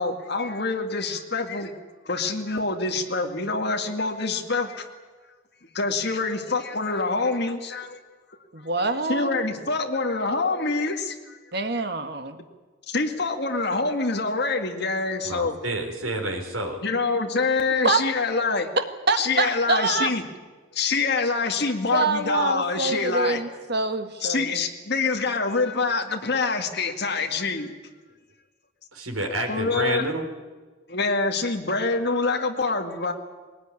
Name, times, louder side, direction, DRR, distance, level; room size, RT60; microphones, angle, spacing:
voice 1, 0.0-1.7 2.1-4.8 5.7-8.0 9.1-11.4 12.9-15.6 16.8-18.7 19.2-20.2 20.7-23.4 24.2-27.7 29.5-30.0 30.9-33.1, left 3 dB, 50° left, 3 dB, 2.0 m, -25 dB
voice 2, 8.5-9.4 11.5-12.4 17.8-18.0 18.8-20.1 21.9-24.6, right 3 dB, 50° right, 8 dB, 1.7 m, -25 dB
voice 3, 15.2-16.8 28.9-30.3, right 1 dB, 85° right, 3 dB, 4.4 m, -29 dB
20.5 x 19.0 x 9.8 m, 1.3 s
head